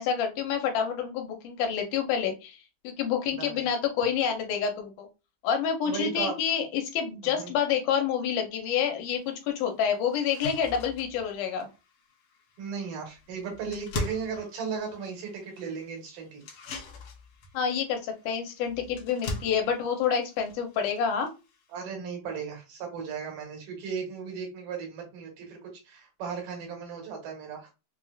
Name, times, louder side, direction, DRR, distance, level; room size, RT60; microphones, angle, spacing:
voice 1, 0.0-2.6 2.8-5.1 5.4-11.7 17.5-21.3, left 7 dB, 90° left, 4 dB, 2.3 m, -28 dB
voice 2, 3.3-3.7 5.8-6.3 7.2-7.5 12.6-16.4 21.7-27.7, right 6 dB, 90° right, 1 dB, 2.9 m, -36 dB
sound 1, 9.1-9.2 9.7-9.8 10.1-21.8, left 3 dB, 75° left, 1.5 m, -42 dB
5.7 x 2.1 x 2.4 m, 0.28 s
omnidirectional pair, 3.6 m